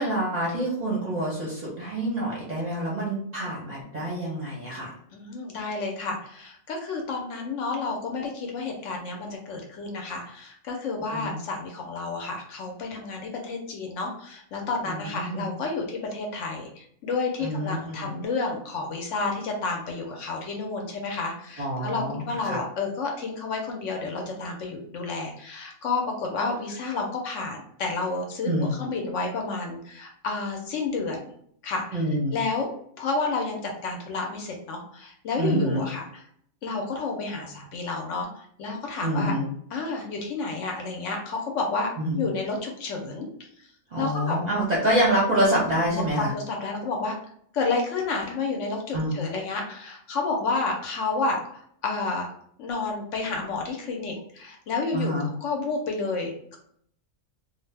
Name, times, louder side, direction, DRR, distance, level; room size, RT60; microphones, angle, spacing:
voice 1, 0.0-4.9 11.1-11.4 14.9-15.5 17.4-18.1 21.6-22.6 28.4-28.7 31.9-32.4 35.4-35.8 39.0-39.5 42.0-42.3 43.9-46.3 48.9-49.2 54.9-55.3, right 1 dB, 40° right, -5 dB, 0.6 m, -26 dB
voice 2, 5.1-31.3 31.6-32.0 32.3-32.7 33.0-36.2 36.6-38.3 38.6-39.3 39.7-41.9 42.2-43.3 44.0-44.4 45.9-47.1 47.5-52.3 52.6-55.1 55.4-56.6, left 3 dB, 70° left, 1 dB, 0.9 m, -30 dB
2.5 x 2.0 x 3.2 m, 0.66 s
omnidirectional pair, 1.4 m